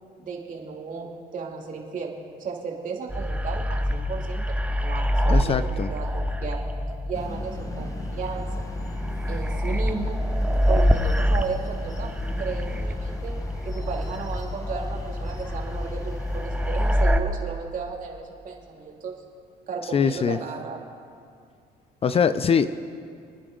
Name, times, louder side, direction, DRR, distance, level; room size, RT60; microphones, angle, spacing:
voice 1, 0.2-2.1 2.4-5.6 5.9-6.7 7.1-8.6 9.3-10.2 10.7-12.1 12.4-13.4 13.6-19.1 19.7-20.8, right 5 dB, 50° right, 0 dB, 2.8 m, -34 dB
sound 1, 3.1-17.2, equal, 5° right, 0.8 m, -26 dB
voice 2, 5.3-5.9 19.9-20.4 22.0-22.7, left 6 dB, 35° left, 13 dB, 0.5 m, -22 dB
sound 2, 7.1-17.0, left 2 dB, 20° left, 1.4 m, -39 dB
29.0 x 9.9 x 3.9 m, 2.4 s
cardioid pair, 110°, 17 cm